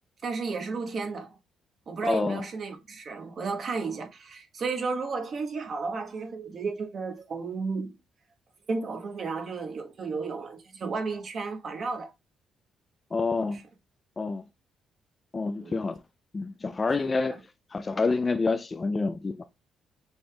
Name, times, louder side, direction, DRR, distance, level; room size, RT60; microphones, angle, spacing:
voice 1, 0.2-1.3 1.9-7.9 8.7-12.1 13.5-13.6 15.6-15.8 17.0-17.3, right 4 dB, 50° right, 1.1 m, -33 dB
voice 2, 2.0-2.4 13.1-13.6 14.2-14.4 15.3-16.0 16.3-17.4 17.7-19.4, left 3 dB, 30° left, 0.3 m, -28 dB
6.2 x 3.4 x 2.2 m
cardioid pair, 90°, 0 cm